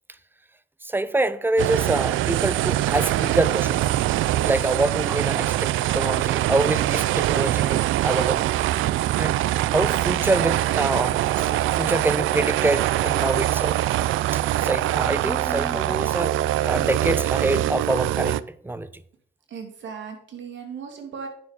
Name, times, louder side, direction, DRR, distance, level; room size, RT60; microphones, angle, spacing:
voice 1, 0.8-3.8 4.5-8.5 9.2-9.4 9.7-11.2 11.5-13.7 14.3-16.4 16.6-18.9, right 2 dB, 10° right, 0.7 m, -26 dB
sound 1, 1.6-18.4, right 14 dB, 85° right, 0.5 m, -23 dB
voice 2, 19.5-21.3, right 6 dB, 70° right, 2.7 m, -38 dB
9.5 x 6.9 x 5.2 m
cardioid pair, 90°, 20 cm